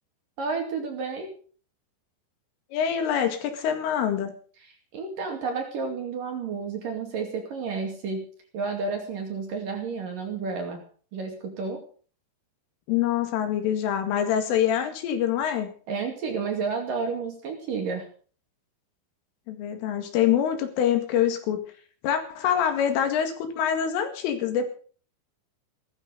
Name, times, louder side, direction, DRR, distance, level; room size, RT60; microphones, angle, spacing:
voice 1, 0.4-1.3 4.9-8.3 8.5-10.8 11.1-11.8 15.9-18.1, right 4 dB, 50° right, 3 dB, 3.4 m, -31 dB
voice 2, 2.7-4.3 12.9-15.7 19.5-21.6 22.0-24.7, left 9 dB, 75° left, 7 dB, 4.5 m, -25 dB
17.0 x 13.5 x 5.3 m, 0.43 s
omnidirectional pair, 5.9 m